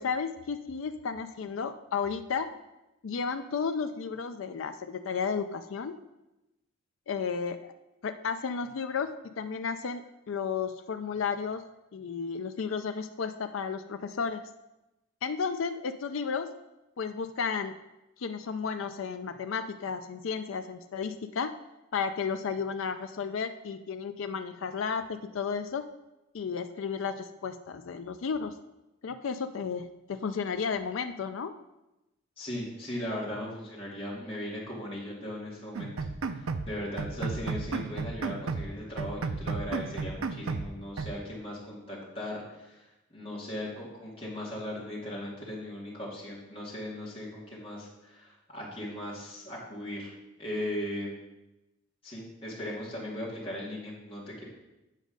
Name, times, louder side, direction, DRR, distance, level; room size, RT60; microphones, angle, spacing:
voice 1, 0.0-2.5 3.0-6.0 7.1-7.7 8.0-11.6 11.9-14.5 15.2-16.5 17.0-17.7 18.2-21.5 21.9-25.9 26.3-28.5 29.0-31.5, left 5 dB, 75° left, 8 dB, 0.4 m, -33 dB
voice 2, 32.4-35.9 36.2-50.1 50.4-51.1 52.0-54.4, left 1 dB, 25° left, -6 dB, 2.4 m, -38 dB
sound 1, 35.8-36.7 37.0-38.7 39.0-40.7 41.0-41.2, right 4 dB, 90° right, 0.5 m, -33 dB
8.2 x 5.1 x 5.3 m, 0.96 s
head